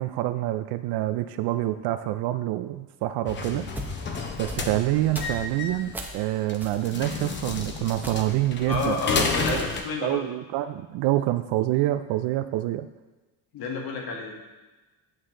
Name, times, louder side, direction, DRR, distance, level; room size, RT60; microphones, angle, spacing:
voice 1, 0.0-3.6 4.4-9.6 10.0-12.9, right 15 dB, 75° right, 10 dB, 0.5 m, -27 dB
sound 1, 3.3-9.8, left 4 dB, 30° left, 0.7 m, -31 dB
sound 2, 3.5-6.2 6.6-8.4 8.7-9.7, equal, 5° right, 0.7 m, -39 dB
voice 2, 8.7-10.2 13.5-14.4, left 4 dB, 65° left, 1 dB, 1.7 m, -30 dB
9.0 x 6.3 x 3.8 m, 1.2 s
cardioid pair, 150°, 39 cm